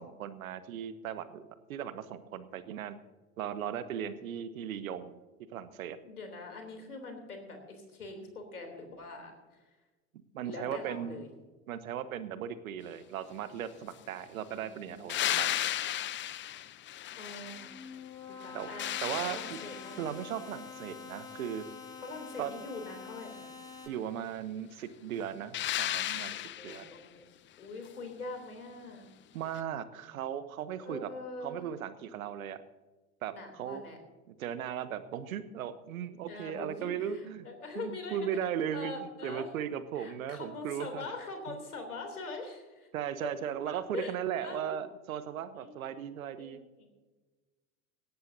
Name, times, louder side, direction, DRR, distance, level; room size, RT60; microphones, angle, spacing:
voice 1, 0.0-3.0 3.4-5.2 5.5-6.0 10.3-11.2 11.7-15.5 18.5-18.7 19.0-19.6 20.0-21.6 22.4-22.5 23.9-26.8 29.3-31.1 31.4-32.6 33.2-33.8 34.4-37.5 37.7-41.1 41.5-41.6 42.9-46.6, right 9 dB, 70° right, 13 dB, 1.2 m, -37 dB
voice 2, 6.0-9.6 10.4-11.3 14.4-15.2 16.4-16.8 17.1-18.0 18.3-20.1 22.0-23.5 26.3-27.2 27.6-29.1 30.8-31.6 33.3-34.0 36.3-38.3 38.7-39.5 39.9-42.9 43.9-44.1 44.4-44.8 45.5-45.9 46.4-46.9, left 3 dB, 85° left, 5 dB, 3.5 m, -43 dB
sound 1, 15.1-18.0 18.4-20.2 25.5-27.0 29.6-29.7, left 12 dB, 25° left, 0.6 m, -35 dB
sound 2, 17.4-23.9, left 5 dB, 10° left, 5.3 m, -47 dB
18.0 x 17.0 x 2.8 m, 1.2 s
figure-of-eight pair, 75°, 43 cm